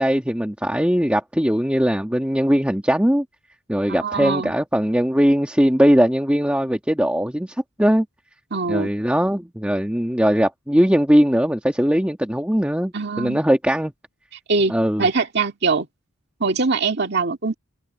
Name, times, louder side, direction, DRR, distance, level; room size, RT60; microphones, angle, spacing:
voice 1, 0.0-3.2 3.7-8.0 8.7-13.9 14.7-15.1, equal, 5° right, 1.3 m, -20 dB
voice 2, 3.9-4.5 8.5-8.9 12.9-13.4 14.5-15.9 16.4-17.6, right 4 dB, 50° right, 2.2 m, -22 dB
head